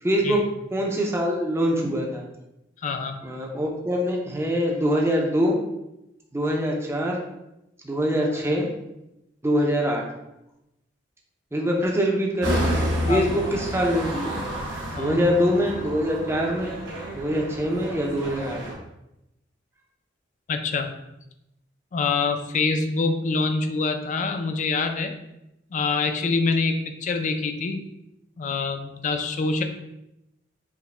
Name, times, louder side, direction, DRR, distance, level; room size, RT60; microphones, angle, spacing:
voice 1, 0.0-0.4 0.7-2.2 3.2-5.6 6.3-7.2 7.8-8.7 9.4-10.0 11.5-12.6 13.1-14.5 15.0-16.7 17.1-18.6, equal, 15° right, 0 dB, 0.5 m, -24 dB
voice 2, 2.8-3.2 13.1-13.4 14.9-15.2 20.5-20.9 21.9-25.1 25.7-27.8 28.4-29.6, left 4 dB, 40° left, 6 dB, 0.4 m, -25 dB
sound 1, 12.4-18.7, equal, 80° right, 1.2 m, -30 dB
4.7 x 2.2 x 3.2 m, 0.88 s
head